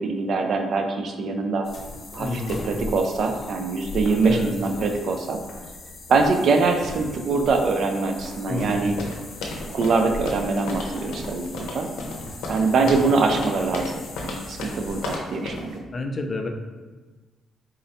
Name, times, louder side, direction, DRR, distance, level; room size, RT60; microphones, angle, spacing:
voice 1, 0.0-1.7 2.1-5.4 6.1-9.0 9.7-11.9 12.5-15.8, right 4 dB, 60° right, 5 dB, 0.4 m, -23 dB
sound 1, 1.6-15.2, left 2 dB, 50° left, 0.9 m, -39 dB
voice 2, 2.2-2.7 4.2-4.5 8.5-8.9 12.8-12.9 15.9-16.5, left 2 dB, 35° left, 4 dB, 0.4 m, -29 dB
sound 2, 8.6-15.7, left 2 dB, 90° left, 0.5 m, -34 dB
3.8 x 2.1 x 4.1 m, 1.3 s
cardioid pair, 90°, 0 cm